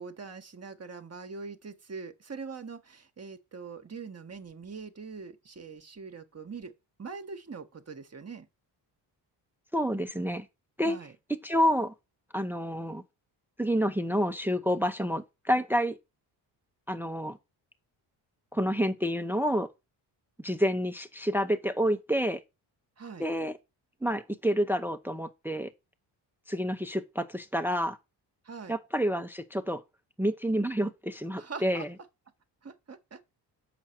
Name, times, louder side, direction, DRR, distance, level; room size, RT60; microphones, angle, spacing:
voice 1, 0.0-6.7 7.0-8.5 10.8-11.1 23.0-23.3 28.4-28.8 31.4-31.8 32.6-33.3, right 5 dB, 35° right, 1.2 m, -43 dB
voice 2, 9.7-10.5 10.8-11.0 11.4-11.9 12.3-13.0 13.6-16.0 16.9-17.4 18.5-19.7 20.4-22.4 23.2-23.6 24.0-25.7 26.5-28.0 28.7-29.8 30.2-31.9, equal, 5° right, 0.7 m, -28 dB
7.2 x 6.1 x 4.4 m
supercardioid pair, 65°, 46 cm